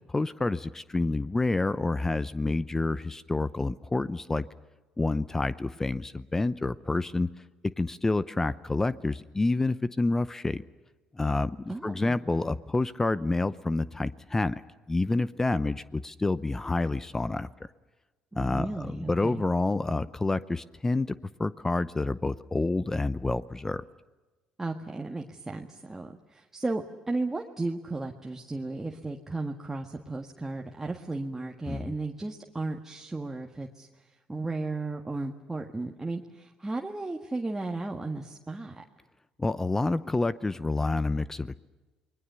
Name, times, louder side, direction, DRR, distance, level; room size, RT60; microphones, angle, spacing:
voice 1, 0.1-4.5 5.0-7.3 7.8-10.6 11.1-14.6 14.9-17.5 18.4-21.1 21.4-23.8 31.7-31.9 39.4-41.6, left 2 dB, 20° left, 16 dB, 0.7 m, -28 dB
voice 2, 11.7-12.2 18.3-19.4 24.6-33.9 34.3-38.8, right 2 dB, 15° right, 2 dB, 1.7 m, -35 dB
28.0 x 21.0 x 7.0 m, 1.2 s
supercardioid pair, 75°, 2 cm